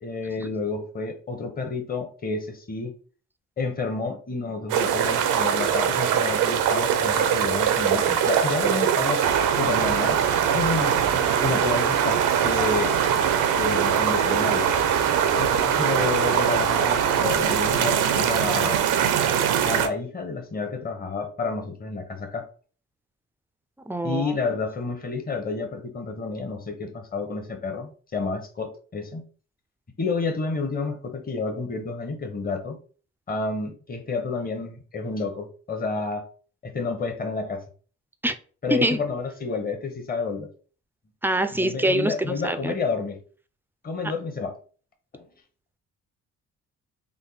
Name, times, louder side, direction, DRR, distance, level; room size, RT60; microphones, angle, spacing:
voice 1, 0.0-2.9 3.6-9.2 9.5-10.2 10.5-13.0 13.5-14.7 15.3-18.8 19.6-22.4 24.0-29.2 30.0-32.8 33.3-36.2 36.6-37.6 38.6-40.5 41.5-43.2 43.8-44.6 45.1-45.3, left 4 dB, 30° left, 4 dB, 0.9 m, -30 dB
sound 1, 4.7-19.9, right 8 dB, 90° right, 0.5 m, -22 dB
voice 2, 23.9-24.3 38.2-38.3 38.7-39.0 41.2-42.7, right 1 dB, 5° right, 10 dB, 0.3 m, -24 dB
3.5 x 2.2 x 3.9 m, 0.40 s
cardioid pair, 90°, 30 cm